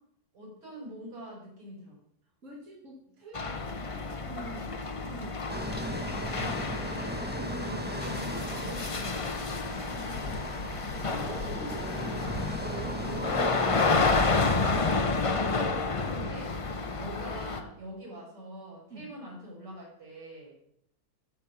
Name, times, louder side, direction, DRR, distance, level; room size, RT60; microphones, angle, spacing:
voice 1, 0.3-2.0 8.0-10.4 10.9-11.1 14.3-16.6 17.0-20.6, equal, 80° right, -4 dB, 6.0 m, -44 dB
voice 2, 2.4-5.6 6.4-7.9 8.3-8.9 10.9-13.9 18.9-19.1, right 1 dB, 50° right, -3 dB, 2.3 m, -44 dB
sound 1, 3.3-17.6, left 3 dB, 45° left, 0.4 m, -30 dB
sound 2, 5.5-14.8, right 1 dB, 10° right, 0.6 m, -38 dB
sound 3, 7.3-7.4 9.4-11.7 12.2-12.3 13.0-13.1, left 3 dB, 60° left, 1.2 m, -43 dB
11.5 x 6.8 x 5.8 m, 0.71 s
omnidirectional pair, 1.7 m